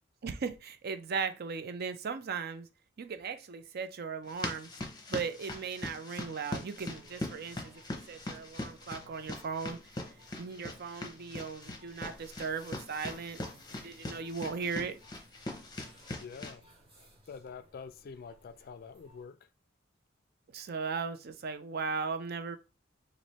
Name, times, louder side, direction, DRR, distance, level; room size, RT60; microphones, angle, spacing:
voice 1, 0.2-2.7 3.0-4.7 5.1-7.8 8.1-9.8 10.4-13.4 13.7-15.0 20.5-22.6, right 5 dB, 55° right, 0.5 m, -37 dB
sound 1, 4.3-16.6, left 2 dB, 20° left, 0.7 m, -42 dB
sound 2, 6.7-19.2, right 1 dB, 30° right, 1.3 m, -61 dB
voice 2, 16.2-16.6 17.0-19.4, left 5 dB, 50° left, 0.3 m, -46 dB
3.2 x 2.5 x 4.1 m
head